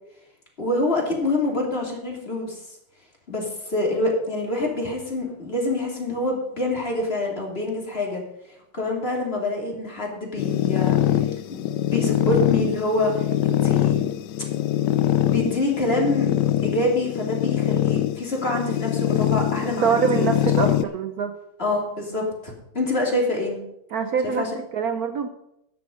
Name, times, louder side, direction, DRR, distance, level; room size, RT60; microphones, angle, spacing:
voice 1, 0.6-2.6 3.3-8.2 8.5-14.0 15.0-16.3 16.6-20.3 20.6-20.7 21.6-23.6 24.2-24.5, left 2 dB, 30° left, 0 dB, 3.1 m, -26 dB
sound 1, 10.4-20.8, left 12 dB, 75° left, 1.2 m, -23 dB
voice 2, 19.8-21.3 23.9-25.3, right 6 dB, 60° right, 8 dB, 1.1 m, -24 dB
13.0 x 9.9 x 5.2 m, 0.81 s
omnidirectional pair, 2.0 m